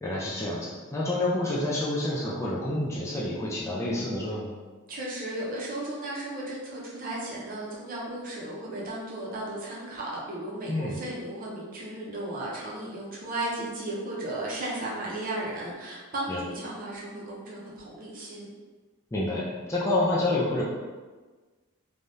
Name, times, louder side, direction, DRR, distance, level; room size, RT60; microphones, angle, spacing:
voice 1, 0.0-4.5 10.7-11.0 16.3-16.4 19.1-20.6, left 1 dB, 15° left, -6 dB, 0.3 m, -28 dB
voice 2, 4.9-18.5, right 1 dB, 40° right, -5 dB, 0.7 m, -35 dB
3.3 x 2.3 x 2.6 m, 1.3 s
head